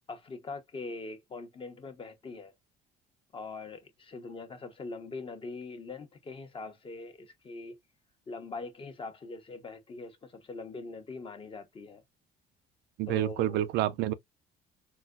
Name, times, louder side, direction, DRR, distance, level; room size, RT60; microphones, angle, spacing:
voice 1, 0.1-2.5 3.3-7.8 8.3-12.0 13.1-13.7, left 3 dB, 30° left, 0.8 m, -42 dB
voice 2, 13.0-14.1, right 13 dB, 80° right, 0.4 m, -28 dB
4.0 x 2.2 x 2.3 m
cardioid pair, 110°, 17 cm